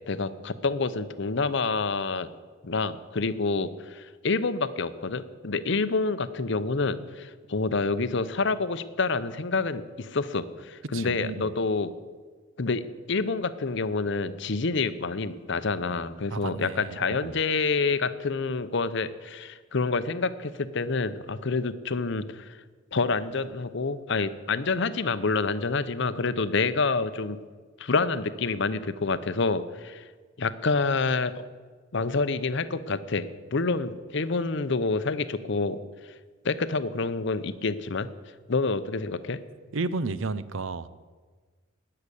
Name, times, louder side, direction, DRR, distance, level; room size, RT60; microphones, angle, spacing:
voice 1, 0.1-2.3 2.6-11.9 12.6-12.8 13.1-22.5 22.9-27.4 27.8-30.0 30.4-31.4 31.9-35.8 36.4-38.1 38.5-39.4, left 4 dB, 60° left, 13 dB, 0.7 m, -28 dB
voice 2, 10.9-11.5 16.3-17.3 39.7-40.9, right 3 dB, 70° right, 16 dB, 0.6 m, -32 dB
19.5 x 6.7 x 8.3 m, 1.5 s
head